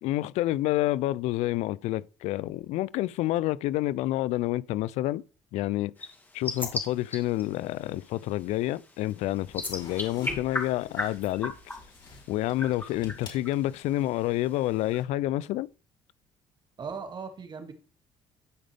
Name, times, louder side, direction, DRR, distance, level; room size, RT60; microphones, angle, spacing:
voice 1, 0.0-5.2 5.5-5.9 6.3-11.5 12.3-15.7, left 15 dB, 80° left, 0.4 m, -28 dB
sound 1, 6.0-15.0, left 2 dB, 15° left, 2.7 m, -39 dB
sound 2, 9.3-14.1, left 3 dB, 45° left, 4.2 m, -47 dB
voice 2, 16.8-17.7, right 5 dB, 40° right, 2.1 m, -38 dB
12.5 x 5.2 x 3.4 m
cardioid pair, 90°, 11 cm